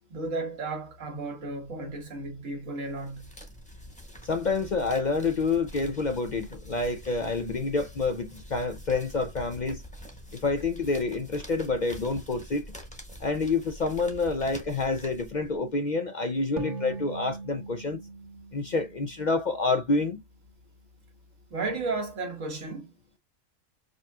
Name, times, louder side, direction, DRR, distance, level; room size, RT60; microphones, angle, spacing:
voice 1, 0.1-3.3 21.5-22.9, right 3 dB, 90° right, 1.8 m, -34 dB
sound 1, 2.9-15.7, equal, 5° left, 1.0 m, -45 dB
voice 2, 4.2-9.8 10.3-12.7 13.2-18.0 18.5-20.2, left 3 dB, 50° left, 0.6 m, -28 dB
sound 2, 16.6-20.0, right 3 dB, 65° right, 1.5 m, -40 dB
5.2 x 2.8 x 2.3 m
omnidirectional pair, 1.3 m